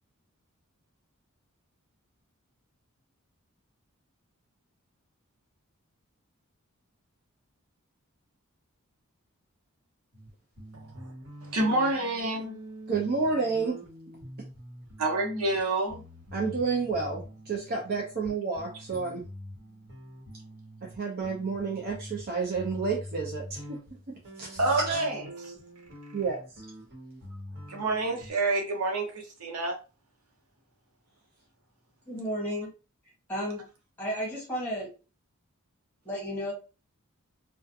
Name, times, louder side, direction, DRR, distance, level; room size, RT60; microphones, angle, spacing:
sound 1, 10.1-10.3 10.6-21.0 21.2-28.3, equal, 60° right, 1.2 m, -45 dB
voice 1, 10.7-11.1 11.4-12.6 15.0-16.0 24.6-25.5 27.7-29.7, right 2 dB, 85° right, 0.8 m, -28 dB
voice 2, 12.9-13.8 16.3-19.2 20.8-23.8 24.1-24.6 24.9-25.0 26.1-26.4, right 4 dB, 45° right, 0.5 m, -30 dB
voice 3, 32.1-32.7 33.3-33.6 34.0-34.9 36.0-36.5, equal, 10° left, 1.4 m, -32 dB
2.4 x 2.2 x 2.6 m
head